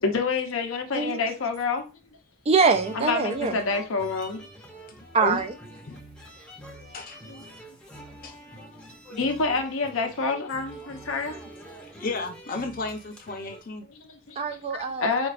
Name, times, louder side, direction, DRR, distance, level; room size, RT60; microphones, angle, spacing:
voice 1, 0.0-1.9 2.9-4.5 4.9-5.1 6.8-7.0 7.3-7.8 9.1-11.4 14.0-14.5 15.0-15.3, left 4 dB, 80° left, 0.7 m, -28 dB
voice 2, 2.5-3.6 5.1-5.5 14.4-15.1, right 4 dB, 30° right, 0.3 m, -23 dB
sound 1, 2.6-13.6, right 1 dB, 5° left, 0.6 m, -46 dB
voice 3, 4.9-5.4 5.8-6.0 6.9-7.2 8.2-8.4 12.0-13.9, left 3 dB, 45° left, 0.7 m, -33 dB
4.5 x 2.3 x 2.5 m
head